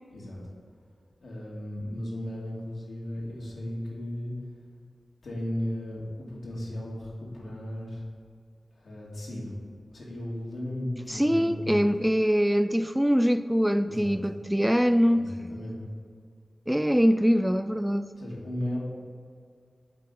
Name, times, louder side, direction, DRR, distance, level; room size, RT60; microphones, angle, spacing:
voice 1, 1.2-4.3 5.2-8.0 8.8-9.5 9.9-11.8 13.9-14.2 15.1-15.8 18.1-18.8, left 1 dB, 85° left, -4 dB, 2.0 m, -35 dB
voice 2, 11.1-15.2 16.7-18.1, equal, 5° right, 11 dB, 0.3 m, -23 dB
8.3 x 4.2 x 6.5 m, 2.1 s
cardioid pair, 50°, 0 cm